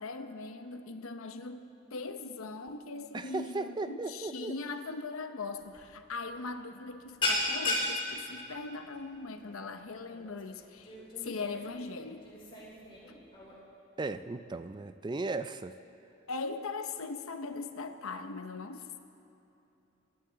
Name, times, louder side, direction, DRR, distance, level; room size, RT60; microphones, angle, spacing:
voice 1, 0.0-12.3 16.3-19.0, left 3 dB, 90° left, 8 dB, 0.8 m, -40 dB
voice 2, 3.1-4.5 14.0-15.7, right 3 dB, 20° right, 11 dB, 0.3 m, -36 dB
sound 1, 5.6-5.9 6.1-6.4 6.7-13.6, left 2 dB, 25° left, 3.1 m, -35 dB
23.0 x 10.5 x 4.0 m, 2.9 s
head